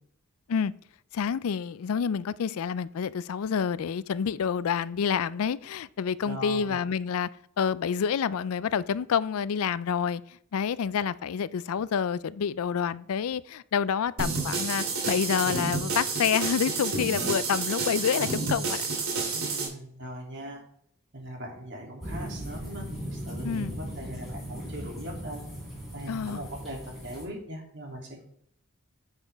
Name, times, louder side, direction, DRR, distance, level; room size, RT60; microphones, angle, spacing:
voice 1, 1.1-7.3 7.6-18.9 23.4-23.7 26.1-26.4, left 7 dB, 75° left, 19 dB, 0.4 m, -28 dB
voice 2, 6.2-6.8 19.3-20.6 21.1-25.5 25.9-28.2, equal, 50° right, 0 dB, 2.8 m, -40 dB
sound 1, 14.2-19.7, right 4 dB, 75° right, 2.7 m, -30 dB
sound 2, 22.0-27.3, equal, ahead, 3.5 m, -38 dB
9.5 x 7.3 x 3.5 m, 0.69 s
head